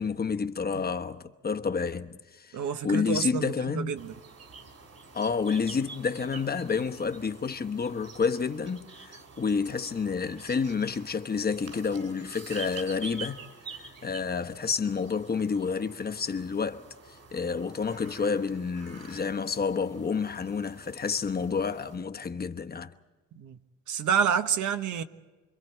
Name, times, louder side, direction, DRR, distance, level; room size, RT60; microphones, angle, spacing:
voice 1, 0.0-2.6 2.8-4.0 5.1-13.4 13.7-16.8 17.3-22.9, left 5 dB, 30° left, 1.1 m, -29 dB
voice 2, 2.5-4.1 23.3-23.6 23.9-25.0, right 8 dB, 75° right, 1.1 m, -28 dB
sound 1, 3.9-22.0, right 4 dB, 55° right, 3.4 m, -47 dB
29.0 x 22.5 x 4.5 m
cardioid pair, 90°, 30 cm